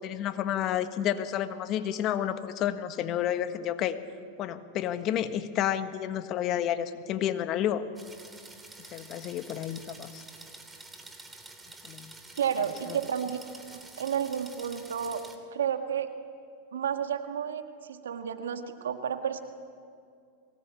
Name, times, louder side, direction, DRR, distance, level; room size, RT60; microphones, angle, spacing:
voice 1, 0.0-4.0 4.4-7.8 8.9-10.3 11.8-12.1 12.9-13.0, left 10 dB, 40° left, 10 dB, 1.4 m, -30 dB
sound 1, 8.0-15.4, right 2 dB, 10° right, 2.9 m, -48 dB
voice 2, 12.4-13.4 14.0-15.2 15.5-16.1 16.7-19.4, right 8 dB, 90° right, 7 dB, 1.8 m, -31 dB
23.5 x 18.5 x 8.5 m, 2.3 s
hypercardioid pair, 115°, 0 cm